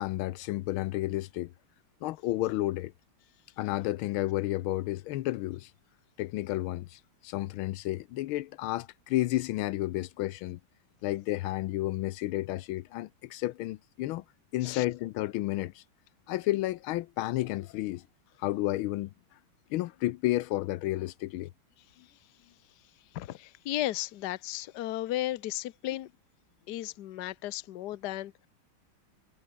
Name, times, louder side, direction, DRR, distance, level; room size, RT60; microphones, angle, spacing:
voice 1, 0.0-1.5 2.0-2.9 3.6-5.7 6.2-10.6 11.0-14.2 14.5-15.8 16.3-18.0 18.4-19.1 19.7-21.5, left 16 dB, 80° left, 1.5 m, -31 dB
voice 2, 23.1-26.1 26.7-28.5, left 15 dB, 60° left, 1.3 m, -34 dB
omnidirectional pair, 2.3 m